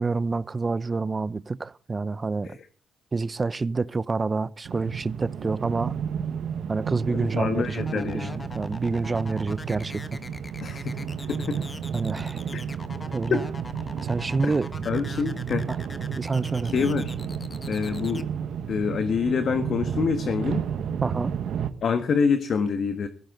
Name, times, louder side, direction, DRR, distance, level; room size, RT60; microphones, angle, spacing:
voice 1, 0.0-2.6 3.1-6.0 6.7-10.2 11.9-12.4 13.1-13.4 14.0-14.7 15.7-15.8 16.2-17.0 21.0-21.3, right 3 dB, 25° right, 0.7 m, -28 dB
sound 1, 4.7-21.7, right 8 dB, 70° right, 1.5 m, -32 dB
voice 2, 7.1-8.4 10.6-11.6 12.5-12.6 13.3-13.4 14.4-14.5 14.8-15.7 16.7-17.1 17.7-18.3 18.7-20.6 21.8-23.1, left 6 dB, 55° left, 1.6 m, -26 dB
sound 2, 7.8-18.2, left 2 dB, 20° left, 1.4 m, -41 dB
16.5 x 16.0 x 3.9 m
cardioid pair, 90°, 0 cm